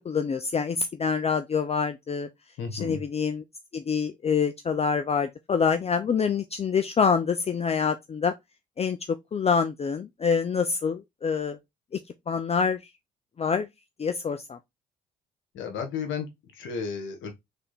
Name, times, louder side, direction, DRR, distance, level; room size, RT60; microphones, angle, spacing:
voice 1, 0.0-2.3 2.7-3.4 3.7-8.3 8.8-11.6 11.9-12.0 12.3-12.8 13.4-13.7 14.0-14.6, left 6 dB, 30° left, 0.5 m, -26 dB
voice 2, 2.6-3.0 15.5-17.3, left 6 dB, 65° left, 1.2 m, -33 dB
3.5 x 3.4 x 4.1 m
hypercardioid pair, 45°, 21 cm